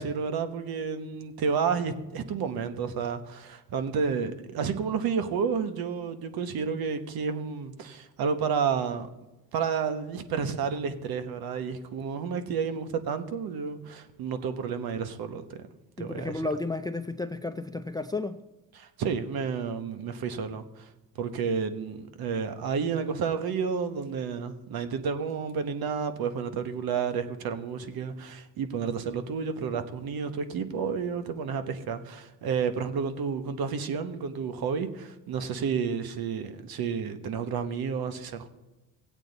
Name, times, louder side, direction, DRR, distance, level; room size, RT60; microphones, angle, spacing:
voice 1, 0.0-9.1 9.5-15.7 16.0-16.3 18.8-20.9 21.1-38.5, right 6 dB, 60° right, 1.1 m, -31 dB
voice 2, 16.0-18.4, left 2 dB, 10° left, 0.4 m, -32 dB
17.5 x 8.2 x 4.0 m
cardioid pair, 90°, 41 cm